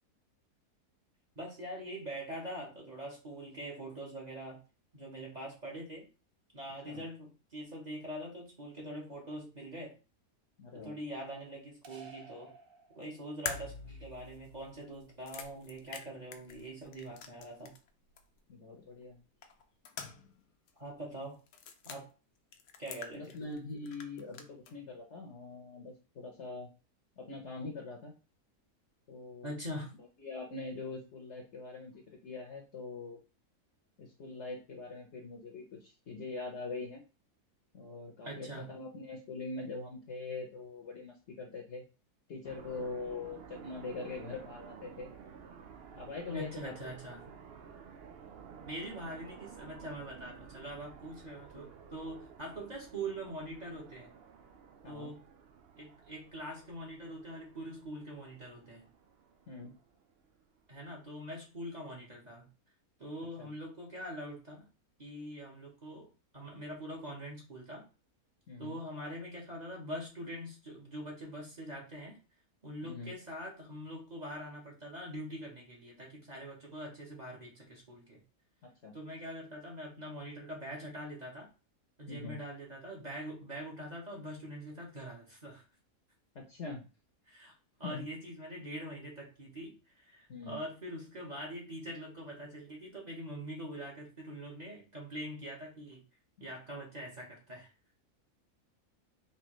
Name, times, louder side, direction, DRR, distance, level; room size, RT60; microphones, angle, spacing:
voice 1, 1.3-4.6 4.9-6.1 6.5-10.0 10.7-12.5 12.9-17.7 20.8-21.4 21.8-22.1 22.8-23.4 29.4-29.9 38.2-38.7 46.2-47.3 48.6-54.1 54.9-55.2 55.8-58.9 60.7-62.5 63.0-64.6 65.0-67.8 68.6-72.2 72.6-78.2 78.9-81.5 82.0-85.6 87.3-87.5 87.8-96.0 96.4-97.7, right 1 dB, 30° right, -3 dB, 1.0 m, -43 dB
voice 2, 10.6-10.9 16.5-16.6 18.5-19.2 23.1-26.7 27.2-28.1 29.1-29.5 30.2-33.2 34.0-37.0 37.7-41.8 42.3-45.1 45.9-46.9 51.5-51.7 54.8-55.1 59.5-59.7 63.4-63.5 68.5-68.8 72.8-73.1 78.6-79.0 82.1-82.4 86.3-86.8 87.8-88.0 90.3-90.6 96.4-96.5, left 3 dB, 55° left, 2 dB, 0.9 m, -43 dB
sound 1, 11.8-13.5, right 3 dB, 50° right, 0.7 m, -53 dB
sound 2, 13.5-17.9 18.2-18.3 19.4-20.4 20.7-20.8 21.5-22.0 22.5-23.6 23.9-24.7, left 6 dB, 80° left, 1.1 m, -45 dB
sound 3, 42.4-60.8, right 6 dB, 90° right, 0.5 m, -53 dB
4.4 x 2.7 x 3.0 m, 0.32 s
omnidirectional pair, 1.6 m